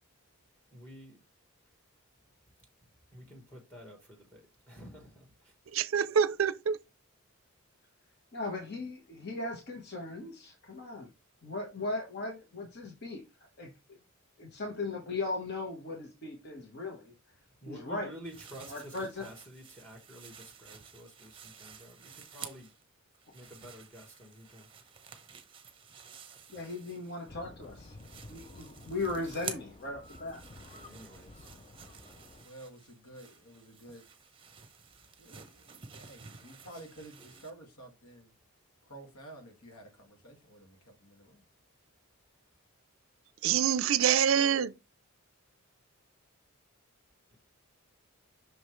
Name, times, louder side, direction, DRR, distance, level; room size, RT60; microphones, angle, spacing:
voice 1, 0.7-1.2 3.1-5.5 17.6-22.7 23.3-25.0 30.7-31.5, equal, 5° left, 1.4 m, -50 dB
voice 2, 5.7-6.8 43.4-44.7, right 8 dB, 65° right, 0.5 m, -26 dB
voice 3, 8.3-11.1 11.4-13.2 13.6-14.0 14.4-17.1 17.7-18.1 18.7-19.3 26.5-28.0 28.3-30.4, left 2 dB, 45° left, 1.2 m, -38 dB
sound 1, 18.2-22.8 23.1-27.3 27.6-37.5, right 7 dB, 25° right, 0.9 m, -50 dB
sound 2, 27.3-32.4, left 2 dB, 25° left, 0.5 m, -52 dB
voice 4, 32.1-34.1 35.2-38.3 38.8-41.4, right 1 dB, 85° left, 2.1 m, -51 dB
6.1 x 5.1 x 3.1 m
head